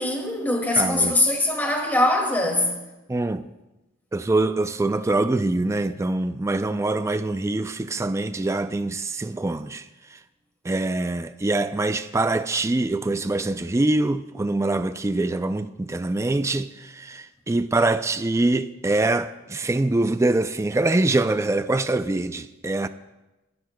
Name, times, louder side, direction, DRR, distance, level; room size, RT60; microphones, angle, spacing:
voice 1, 0.0-2.8, left 1 dB, 10° left, 2.1 m, -22 dB
voice 2, 0.7-1.1 3.1-3.5 4.1-10.2 10.6-22.9, right 2 dB, 15° right, 0.3 m, -24 dB
27.5 x 12.0 x 2.2 m
head